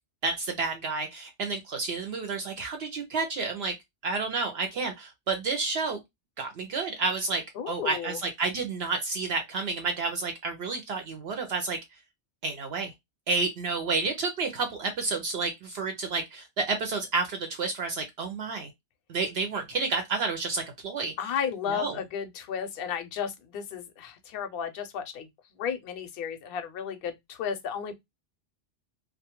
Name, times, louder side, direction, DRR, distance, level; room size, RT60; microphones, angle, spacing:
voice 1, 0.2-3.7 4.0-6.0 6.4-11.8 12.4-12.9 13.3-18.7 19.1-21.3 21.7-22.0, right 4 dB, 65° right, 0.8 m, -30 dB
voice 2, 7.6-8.2 21.2-25.3 25.6-28.0, left 7 dB, 60° left, 0.7 m, -33 dB
2.3 x 2.2 x 2.8 m
omnidirectional pair, 1.2 m